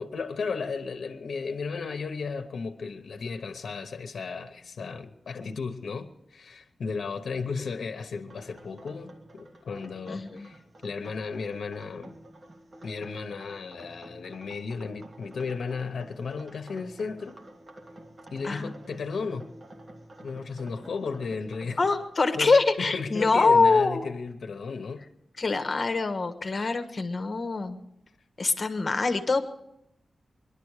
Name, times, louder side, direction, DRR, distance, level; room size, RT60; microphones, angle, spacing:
voice 1, 0.0-12.2 12.8-17.4 18.3-19.5 20.2-21.8 22.3-22.5 22.9-25.1, left 5 dB, 75° left, 0.9 m, -34 dB
sound 1, 8.3-22.1, right 1 dB, 40° right, 1.8 m, -49 dB
voice 2, 10.1-10.5 18.4-18.7 21.8-24.1 25.4-27.8 28.4-29.5, left 3 dB, 40° left, 1.2 m, -24 dB
22.0 x 11.5 x 4.9 m
wide cardioid pair, 120°, 0 cm